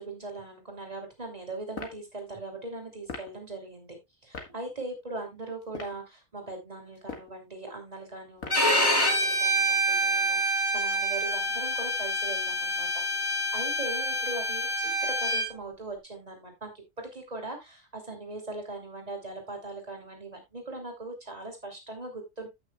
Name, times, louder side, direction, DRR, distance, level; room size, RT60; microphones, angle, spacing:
voice 1, 0.0-4.0 4.2-12.9 13.5-16.7 17.0-22.5, right 2 dB, 30° right, 2 dB, 3.2 m, -40 dB
sound 1, 1.7-2.0 3.1-3.3 4.3-4.5 5.6-6.0 7.0-7.4 8.4-8.7, left 4 dB, 80° left, 2.1 m, -40 dB
Bowed string instrument, 8.5-15.5, equal, 15° left, 2.4 m, -27 dB
15.0 x 6.1 x 2.3 m, 0.21 s
omnidirectional pair, 1.4 m